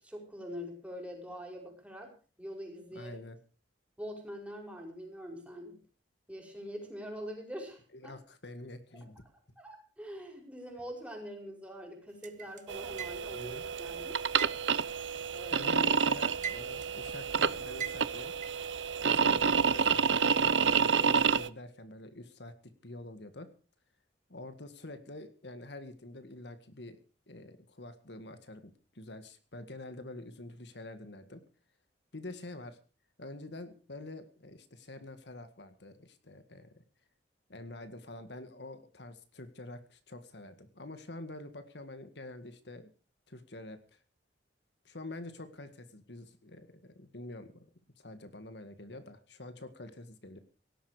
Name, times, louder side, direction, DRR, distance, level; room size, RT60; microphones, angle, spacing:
voice 1, 0.0-2.1 2.4-3.2 4.0-5.8 6.3-8.1 9.6-14.2 15.3-15.7, equal, 5° right, 2 dB, 5.4 m, -44 dB
voice 2, 2.9-3.4 7.9-9.2 13.4-13.6 15.5-18.3 19.0-23.5 24.3-27.0 27.3-31.4 32.1-32.8 33.2-36.8 37.5-42.9 43.3-44.0 44.9-47.7 48.0-50.4, left 2 dB, 65° left, 10 dB, 1.9 m, -46 dB
sound 1, 12.2-13.5 14.4-15.8 16.1-17.0 17.8-18.7, right 8 dB, 45° right, 1.2 m, -40 dB
sound 2, 12.7-21.5, right 6 dB, 90° right, 0.9 m, -29 dB
17.5 x 13.0 x 5.0 m, 0.38 s
head